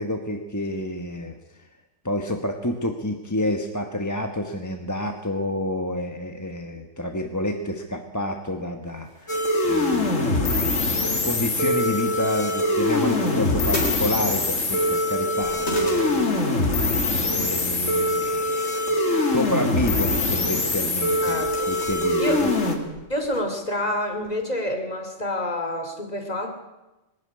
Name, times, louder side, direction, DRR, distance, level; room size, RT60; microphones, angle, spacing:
voice 1, 0.0-1.3 2.0-10.7 11.2-18.8 19.3-22.5, left 1 dB, 15° left, 4 dB, 1.2 m, -29 dB
sound 1, 8.5-8.6 9.0-10.0 10.3-11.6 11.9-15.1 15.4-16.8 17.5-18.4 18.7-19.2 20.2-20.3 20.8-23.4 23.7-23.8 24.2-24.4, left 1 dB, 50° left, 4.4 m, -38 dB
sound 2, 9.3-22.8, left 2 dB, 70° left, 2.6 m, -23 dB
voice 2, 21.2-21.7 22.2-22.4 23.1-26.5, left 1 dB, 30° left, 4 dB, 2.8 m, -28 dB
21.0 x 13.0 x 9.7 m, 1.0 s
omnidirectional pair, 1.4 m